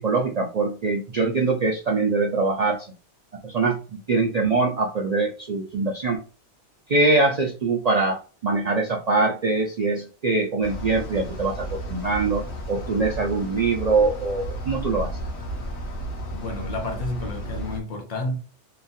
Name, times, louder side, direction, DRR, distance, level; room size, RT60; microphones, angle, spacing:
voice 1, 0.0-2.9 3.4-6.2 6.9-15.1, right 3 dB, 60° right, 0.4 m, -23 dB
sound 1, 10.6-17.8, right 1 dB, 70° left, 1.1 m, -33 dB
voice 2, 16.3-18.4, left 2 dB, 40° left, 0.8 m, -30 dB
2.9 x 2.3 x 2.6 m
omnidirectional pair, 1.2 m